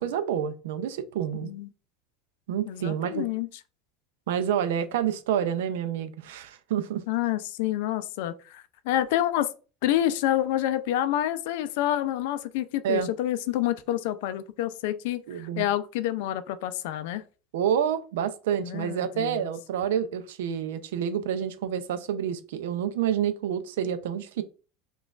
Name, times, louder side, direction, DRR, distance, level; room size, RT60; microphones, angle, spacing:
voice 1, 0.0-1.5 2.5-3.3 4.3-7.0 12.8-13.1 15.3-15.6 17.5-24.4, right 9 dB, 85° right, 0.4 m, -28 dB
voice 2, 2.7-3.5 7.1-9.5 9.8-17.2 18.6-19.5, left 12 dB, 75° left, 0.3 m, -28 dB
5.0 x 2.3 x 2.3 m
supercardioid pair, 110°, 0 cm